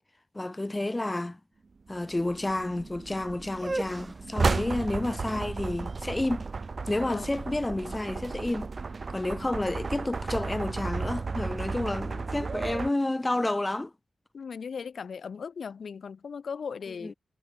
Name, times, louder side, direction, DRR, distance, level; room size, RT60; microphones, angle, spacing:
voice 1, 0.3-1.4 1.9-6.5 6.9-8.7 9.1-13.9 17.0-17.1, left 2 dB, 15° left, 2.0 m, -30 dB
sound 1, 1.9-12.9, right 4 dB, 45° right, 2.4 m, -34 dB
sound 2, 3.5-9.4, right 2 dB, 20° right, 2.6 m, -41 dB
voice 2, 4.4-4.8 7.0-7.3 14.3-17.1, left 6 dB, 70° left, 2.7 m, -38 dB
wide cardioid pair, 115°, 0 cm